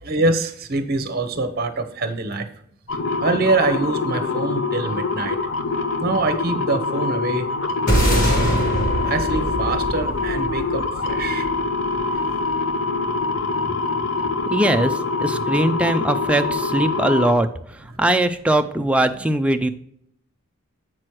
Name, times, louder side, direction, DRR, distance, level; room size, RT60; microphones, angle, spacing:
voice 1, 0.0-2.5 3.2-5.4 6.0-7.5 7.9-8.6 9.0-11.5 13.4-13.8 14.1-14.4, right 3 dB, 50° right, 8 dB, 0.8 m, -25 dB
sound 1, 2.9-17.3, left 3 dB, 65° left, 0.7 m, -24 dB
sound 2, 7.9-12.3, right 1 dB, 40° left, 1.8 m, -23 dB
voice 2, 14.5-17.5 18.0-19.7, right 1 dB, 5° right, 6 dB, 0.4 m, -20 dB
7.6 x 6.1 x 3.1 m, 0.70 s
head